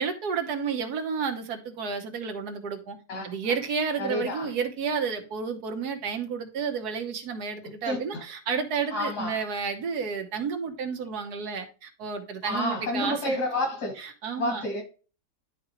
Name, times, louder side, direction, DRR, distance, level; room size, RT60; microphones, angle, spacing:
voice 1, 0.0-3.0 3.2-13.4 14.0-14.7, right 6 dB, 80° right, 1.5 m, -31 dB
voice 2, 4.0-4.5 7.6-8.2 8.9-9.4 12.4-14.0 14.4-14.8, left 1 dB, 90° left, 2.8 m, -30 dB
11.0 x 3.7 x 3.0 m
omnidirectional pair, 1.6 m